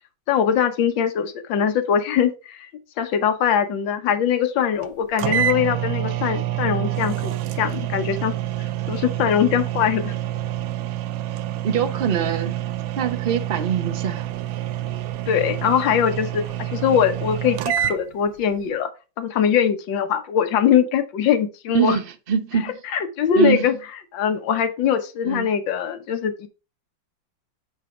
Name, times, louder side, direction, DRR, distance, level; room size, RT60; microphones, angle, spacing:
voice 1, 0.3-2.7 3.0-8.3 8.9-10.1 15.3-18.9 19.2-22.0 22.6-23.8 24.1-26.5, left 8 dB, 75° left, 1.6 m, -22 dB
sound 1, 4.8-4.9 5.2-18.0, right 12 dB, 85° right, 1.4 m, -27 dB
voice 2, 11.6-12.6 13.0-14.3 21.7-22.7 23.4-23.6 25.2-25.5, right 7 dB, 55° right, 0.6 m, -23 dB
8.3 x 3.4 x 4.7 m
omnidirectional pair, 2.1 m